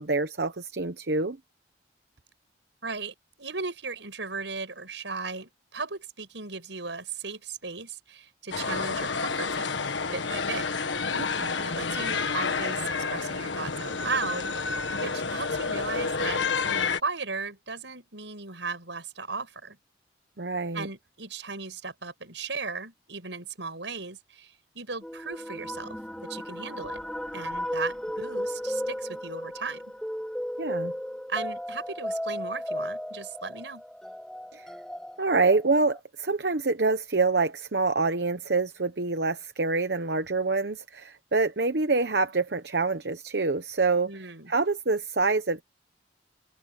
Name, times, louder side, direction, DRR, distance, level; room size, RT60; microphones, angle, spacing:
voice 1, 0.0-1.4 11.1-11.7 20.4-20.9 30.6-30.9 34.5-34.7 35.2-44.1 44.5-45.6, right 3 dB, 65° right, 1.0 m, -26 dB
voice 2, 2.8-10.7 11.6-19.8 20.7-27.0 27.3-29.9 31.3-33.8 44.0-44.5, right 4 dB, 80° right, 6.7 m, -36 dB
sound 1, 8.5-17.0, left 4 dB, 90° left, 1.5 m, -29 dB
sound 2, 25.0-36.0, equal, 5° left, 0.9 m, -35 dB
head